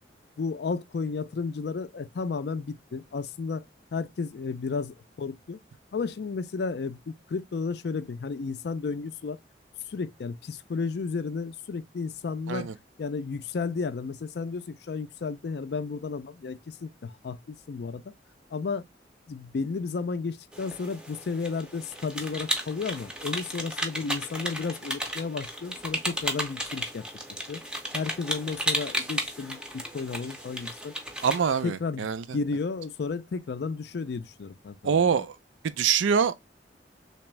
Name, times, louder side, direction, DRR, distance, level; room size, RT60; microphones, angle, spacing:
voice 1, 0.4-3.7 3.9-5.6 5.9-9.4 9.9-12.7 13.0-18.1 18.5-18.8 19.3-27.1 27.4-27.6 27.9-30.9 31.6-35.2, left 4 dB, 60° left, 0.4 m, -33 dB
sound 1, 20.5-31.6, equal, 5° right, 0.5 m, -34 dB
voice 2, 31.2-32.2 34.8-35.4 35.6-36.4, right 6 dB, 85° right, 0.4 m, -24 dB
3.4 x 2.9 x 3.1 m
head